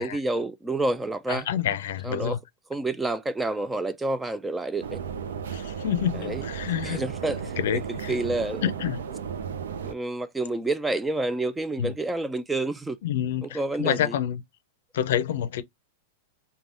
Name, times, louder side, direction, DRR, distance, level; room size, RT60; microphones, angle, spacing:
voice 1, 0.0-1.5 2.0-2.4 2.7-5.0 6.1-6.4 6.8-7.6 8.1-8.6 9.8-13.0 13.4-14.2, right 2 dB, 10° right, 0.3 m, -29 dB
voice 2, 1.3-2.4 5.5-7.0 7.6-8.2 8.6-9.0 11.8-11.9 13.0-14.4 14.9-15.6, left 10 dB, 70° left, 0.5 m, -28 dB
sound 1, 4.8-9.9, right 7 dB, 80° right, 0.4 m, -34 dB
3.3 x 2.2 x 2.4 m
hypercardioid pair, 120°, 0 cm